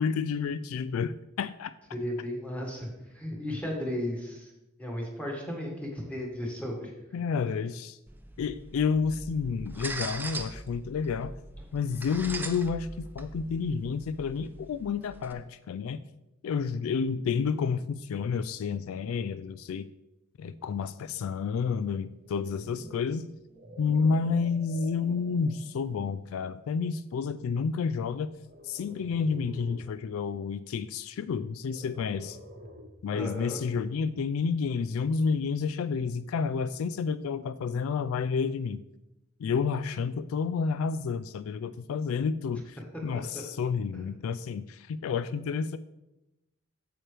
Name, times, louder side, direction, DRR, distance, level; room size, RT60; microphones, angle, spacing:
voice 1, 0.0-1.7 7.1-8.0 8.4-11.4 11.7-16.0 16.4-19.9 20.4-23.3 23.8-28.3 28.6-32.4 33.0-38.8 39.4-42.8 43.0-45.8, left 5 dB, 75° left, 14 dB, 0.3 m, -30 dB
voice 2, 1.9-4.5 4.8-7.2 33.1-33.6 43.1-43.4, left 1 dB, 5° left, -2 dB, 1.8 m, -35 dB
sound 1, 8.1-15.3, right 2 dB, 10° right, 0.4 m, -41 dB
sound 2, 22.1-25.7 26.4-26.6 28.4-29.9 31.6-33.1, equal, 40° right, 1.0 m, -47 dB
8.7 x 7.5 x 3.3 m, 0.93 s
head